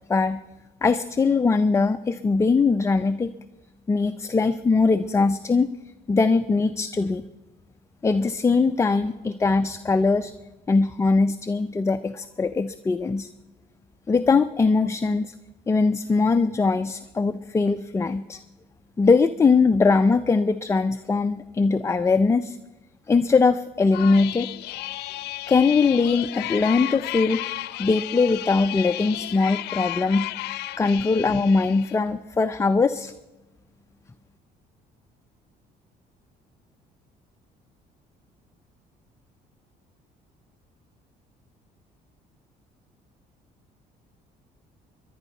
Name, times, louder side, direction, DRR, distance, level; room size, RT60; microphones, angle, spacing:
voice 1, 0.8-3.3 3.9-5.7 6.1-7.3 8.0-10.3 10.7-13.3 14.1-15.3 15.7-18.4 19.0-22.6 23.1-24.5 25.5-27.4 27.8-30.3 30.8-33.1, left 4 dB, 15° left, 9 dB, 0.4 m, -21 dB
sound 1, 23.9-32.0, left 16 dB, 80° left, 0.6 m, -33 dB
21.5 x 11.0 x 5.4 m, 1.1 s
cardioid pair, 110°, 17 cm